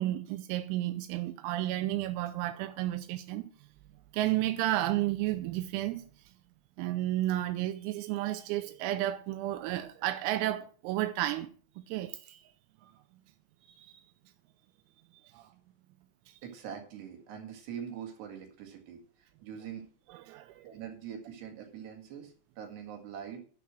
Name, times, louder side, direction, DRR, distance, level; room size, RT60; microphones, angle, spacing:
voice 1, 0.0-3.5 4.1-6.1 6.8-11.5 11.9-12.4 12.8-12.9 13.8-13.9 15.3-15.5 16.3-16.4 20.1-20.7, right 14 dB, 85° right, 3.4 m, -32 dB
voice 2, 16.4-19.8 20.6-23.4, right 8 dB, 60° right, 3.8 m, -43 dB
11.0 x 7.6 x 6.2 m
omnidirectional pair, 6.0 m